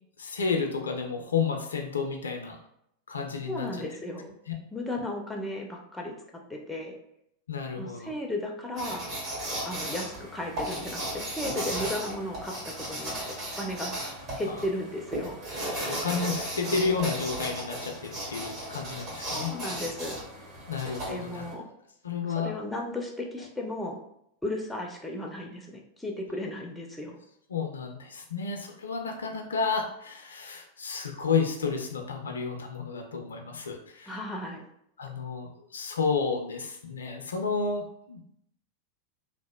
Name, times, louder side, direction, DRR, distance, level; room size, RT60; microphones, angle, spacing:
voice 1, 0.2-2.6 3.1-3.7 4.5-4.6 7.5-8.1 14.5-14.6 15.7-19.5 20.7-21.4 22.0-22.5 27.5-34.2 35.0-38.2, left 5 dB, 70° left, 3 dB, 0.3 m, -31 dB
voice 2, 3.5-4.3 4.7-6.1 6.5-7.0 7.8-9.0 9.6-12.6 12.9-13.1 13.6-13.9 14.4-15.4 19.3-20.2 21.1-21.6 22.4-24.0 24.4-27.2 34.1-34.6, left 1 dB, 5° left, 0 dB, 0.4 m, -35 dB
sound 1, 8.8-21.5, right 1 dB, 40° right, 1.2 m, -35 dB
2.7 x 2.0 x 2.2 m, 0.75 s
figure-of-eight pair, 90°, 0 cm